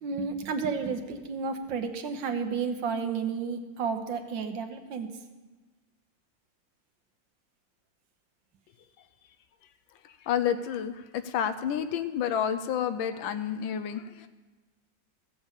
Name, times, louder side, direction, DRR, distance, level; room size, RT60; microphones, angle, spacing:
voice 1, 0.0-5.2, right 5 dB, 75° right, 6 dB, 1.7 m, -32 dB
voice 2, 10.3-14.3, left 9 dB, 85° left, 10 dB, 1.4 m, -30 dB
15.0 x 7.8 x 7.2 m, 1.2 s
omnidirectional pair, 2.1 m